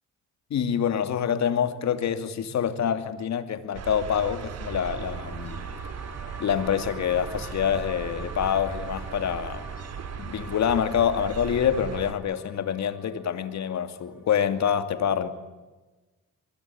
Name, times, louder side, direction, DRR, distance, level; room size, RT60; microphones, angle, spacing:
voice 1, 0.5-5.6 6.4-9.6 10.1-15.3, left 8 dB, 65° left, 2.6 m, -26 dB
sound 1, 3.7-12.1, right 6 dB, 55° right, 2.8 m, -37 dB
sound 2, 4.2-14.4, right 1 dB, 5° right, 5.8 m, -46 dB
24.5 x 22.0 x 8.9 m
cardioid pair, 90°, 30 cm